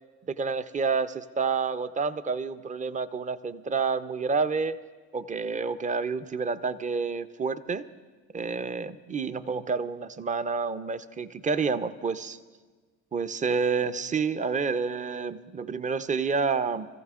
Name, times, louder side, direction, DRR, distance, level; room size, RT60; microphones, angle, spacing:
voice 1, 0.3-4.8 5.1-7.8 8.3-12.4 13.1-16.9, right 5 dB, 20° right, 13 dB, 0.6 m, -29 dB
29.0 x 14.5 x 2.5 m, 1.4 s
hypercardioid pair, 60°, 41 cm